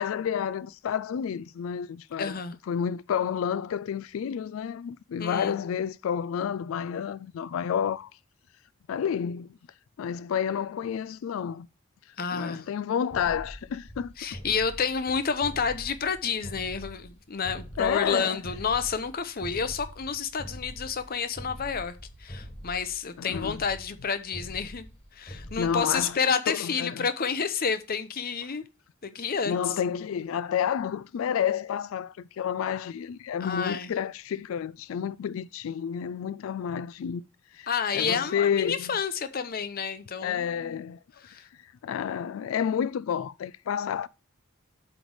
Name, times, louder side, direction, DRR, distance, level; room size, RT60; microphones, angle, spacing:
voice 1, 0.0-2.4 2.7-8.1 8.9-9.6 10.0-11.7 12.3-14.1 17.8-18.4 23.2-23.6 25.6-26.2 26.5-27.1 29.5-37.2 37.5-37.7 37.9-39.0 40.2-41.0 41.6-44.1, left 8 dB, 70° left, 0.3 m, -30 dB
voice 2, 2.2-2.6 5.2-5.5 12.2-12.6 14.2-28.6 29.0-29.7 33.4-33.9 37.7-40.8 41.2-41.5, left 6 dB, 45° left, 0.7 m, -30 dB
sound 1, 13.1-26.2, equal, 25° left, 1.5 m, -44 dB
8.0 x 3.4 x 6.2 m
head